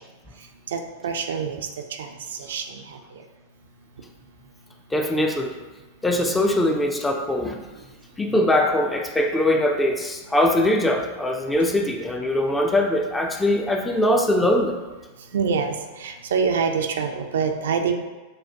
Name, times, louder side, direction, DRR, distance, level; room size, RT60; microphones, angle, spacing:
voice 1, 0.7-1.6 1.9-3.0 15.3-17.9, right 6 dB, 60° right, 5 dB, 0.3 m, -26 dB
voice 2, 4.9-5.5 6.0-7.6 8.2-14.8, left 1 dB, 10° left, 3 dB, 0.4 m, -21 dB
6.3 x 2.2 x 2.8 m, 1.2 s
figure-of-eight pair, 90°, 0 cm